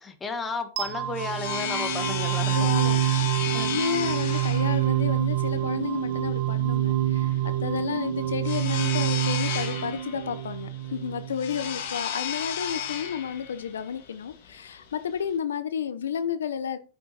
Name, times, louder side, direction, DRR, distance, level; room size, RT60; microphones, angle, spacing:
voice 1, 0.0-2.7 3.5-3.8, left 4 dB, 15° left, 1.6 m, -33 dB
sound 1, 0.8-15.4, left 9 dB, 60° left, 2.6 m, -34 dB
sound 2, 0.8-11.7, right 12 dB, 55° right, 1.2 m, -27 dB
voice 2, 2.5-3.4 3.7-16.8, left 8 dB, 85° left, 0.8 m, -32 dB
8.7 x 6.1 x 4.3 m
hypercardioid pair, 125°, 0 cm